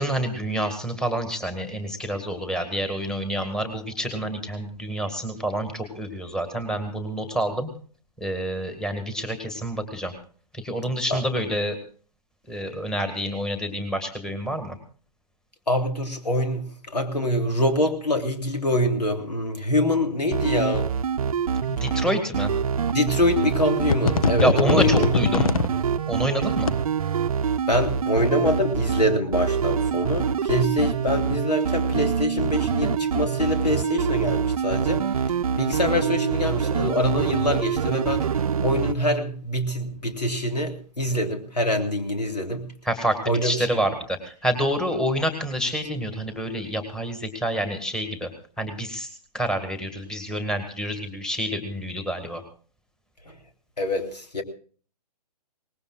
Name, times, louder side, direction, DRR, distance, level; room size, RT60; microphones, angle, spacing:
voice 1, 0.0-7.7 8.2-10.1 10.5-11.8 12.5-14.8 21.7-22.5 24.4-25.6 26.1-26.7 42.9-48.3 48.6-52.4, right 1 dB, 5° left, 6 dB, 1.9 m, -28 dB
voice 2, 15.7-20.9 22.9-25.2 27.7-42.7 43.3-43.7 53.2-53.4 53.8-54.4, left 1 dB, 80° left, 4 dB, 3.1 m, -25 dB
sound 1, 20.3-38.9, right 7 dB, 60° right, 0.7 m, -25 dB
sound 2, 21.9-22.0 22.9-23.0 23.4-23.6 23.9-25.7 26.4-26.7, left 6 dB, 55° left, 0.7 m, -22 dB
23.0 x 19.5 x 2.4 m, 0.42 s
figure-of-eight pair, 135°, 21 cm